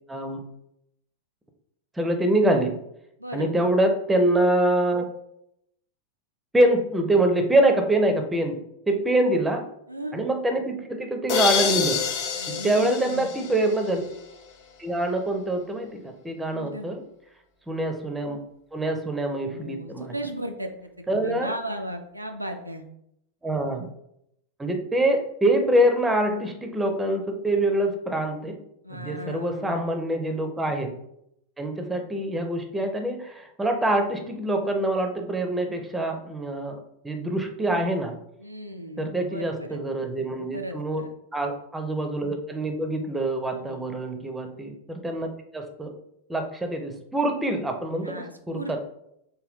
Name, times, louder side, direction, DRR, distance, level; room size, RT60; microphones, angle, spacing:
voice 1, 0.1-0.4 2.0-2.8 3.3-5.1 6.5-8.6 8.9-9.6 10.1-12.0 12.6-14.0 14.8-17.0 17.7-18.4 18.7-20.1 21.1-21.5 23.4-23.9 24.6-28.6 28.9-30.9 31.6-38.2 39.0-41.0 41.3-45.9 46.3-48.8, right 1 dB, 10° right, 5 dB, 0.5 m, -25 dB
voice 2, 3.2-3.5 9.1-9.2 9.9-10.2 12.4-13.3 16.5-16.9 19.4-22.8 28.8-29.8 38.4-39.8 40.5-41.1 43.5-43.8 48.0-48.8, right 1 dB, 85° right, 4 dB, 0.3 m, -36 dB
sound 1, 11.3-14.1, left 7 dB, 45° left, 0.5 m, -27 dB
3.7 x 2.2 x 3.4 m, 0.76 s
figure-of-eight pair, 90°, 0 cm